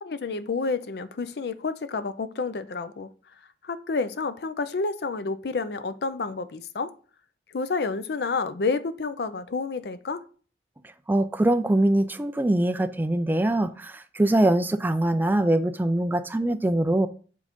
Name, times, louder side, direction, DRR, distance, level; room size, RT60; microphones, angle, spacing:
voice 1, 0.0-3.1 3.6-6.9 7.5-10.2, left 4 dB, 60° left, 0.5 m, -29 dB
voice 2, 11.1-17.1, right 1 dB, 10° right, 0.3 m, -23 dB
7.4 x 3.8 x 3.6 m
head